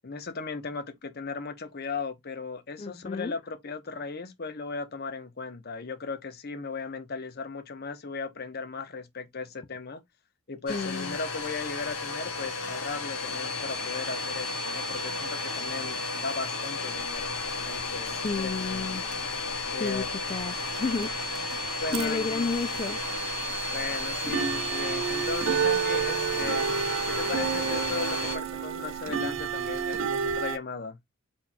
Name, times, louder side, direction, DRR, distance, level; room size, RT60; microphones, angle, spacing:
voice 1, 0.0-10.0 10.5-18.9 19.7-20.1 21.8-22.5 23.7-31.0, left 4 dB, 45° left, 0.9 m, -37 dB
voice 2, 2.8-3.3 10.7-11.2 18.1-19.0 19.7-21.1 21.5-23.0, left 4 dB, 30° left, 0.3 m, -32 dB
Domestic sounds home sounds, 10.7-28.4, left 2 dB, 70° left, 1.9 m, -33 dB
sound 1, 17.0-18.8 19.1-19.6 19.9-30.6, right 7 dB, 65° right, 0.6 m, -30 dB
4.4 x 4.3 x 2.2 m
head